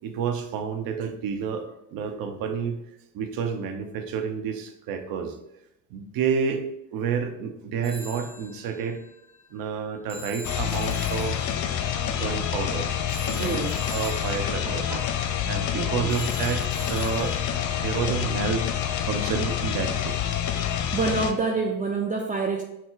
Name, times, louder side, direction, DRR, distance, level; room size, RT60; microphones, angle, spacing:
voice 1, 0.0-2.8 3.1-5.4 5.9-9.0 9.5-11.4 12.0-12.9 13.3-15.1 15.5-18.6 19.0-20.2, right 6 dB, 65° right, 6 dB, 0.8 m, -30 dB
Telephone, 7.8-17.6, left 1 dB, 15° left, 0.9 m, -44 dB
sound 1, 10.4-21.3, left 9 dB, 50° left, 0.6 m, -27 dB
voice 2, 13.4-13.7 15.7-16.2 17.7-17.9 20.7-22.6, right 4 dB, 20° right, 1 dB, 0.5 m, -28 dB
6.1 x 2.1 x 3.8 m, 0.84 s
hypercardioid pair, 60°, 38 cm